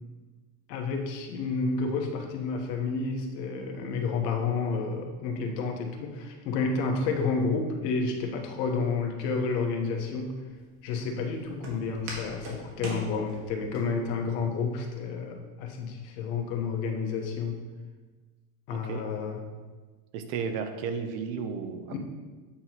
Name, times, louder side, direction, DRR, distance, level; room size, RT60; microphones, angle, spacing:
voice 1, 0.7-10.4 10.8-17.6 18.7-19.4 21.9-22.0, left 4 dB, 80° left, 3 dB, 1.3 m, -30 dB
Walk footsteps, 9.2-13.8, right 2 dB, 90° right, 2.0 m, -42 dB
voice 2, 18.7-19.0 20.1-21.9, right 6 dB, 55° right, 7 dB, 0.9 m, -33 dB
8.6 x 3.0 x 5.7 m, 1.3 s
supercardioid pair, 145°, 49 cm